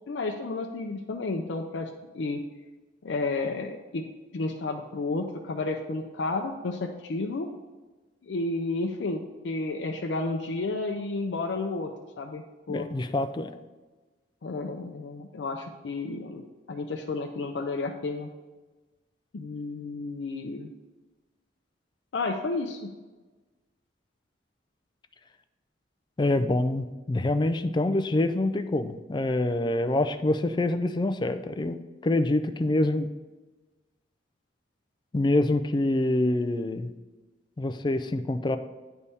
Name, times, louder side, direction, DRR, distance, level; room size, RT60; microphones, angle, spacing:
voice 1, 0.1-1.9 2.1-2.4 3.0-4.0 4.3-7.5 8.2-11.9 12.2-12.9 14.4-16.4 16.7-18.3 19.3-20.7 22.1-22.9, left 3 dB, 75° left, 2 dB, 0.5 m, -31 dB
voice 2, 12.7-13.5 26.2-31.8 32.0-33.1 35.1-36.9 37.6-38.6, left 2 dB, 25° left, 10 dB, 0.4 m, -26 dB
9.6 x 3.5 x 4.1 m, 1.2 s
head